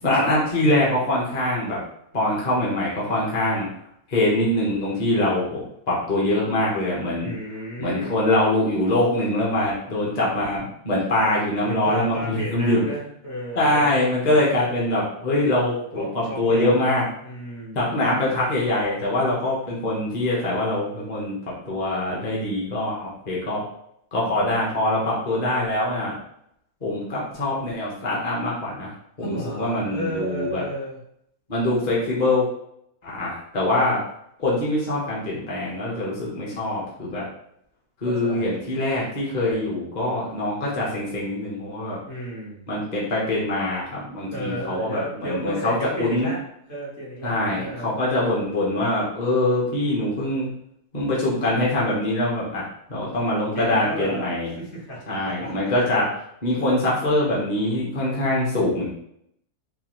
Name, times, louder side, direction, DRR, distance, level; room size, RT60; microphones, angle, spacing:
voice 1, 0.0-1.8 2.1-3.7 4.1-7.3 7.8-12.8 13.6-17.0 17.7-21.4 21.7-23.6 24.1-26.2 26.8-28.9 29.2-30.6 31.5-32.4 33.0-34.0 34.4-37.2 38.0-42.0 42.7-46.3 47.2-50.5 50.9-52.6 52.9-54.5 55.1-56.1 56.4-58.9, left 1 dB, 35° left, -6 dB, 0.9 m, -23 dB
voice 2, 7.2-8.2 11.6-14.4 15.9-16.8 17.2-18.4 29.2-31.0 38.0-38.6 42.1-42.6 44.3-46.4 46.7-47.9 53.2-53.3 53.5-54.3 54.6-55.7, right 1 dB, 50° left, -6 dB, 1.5 m, -33 dB
4.0 x 2.6 x 3.0 m, 0.73 s
omnidirectional pair, 1.5 m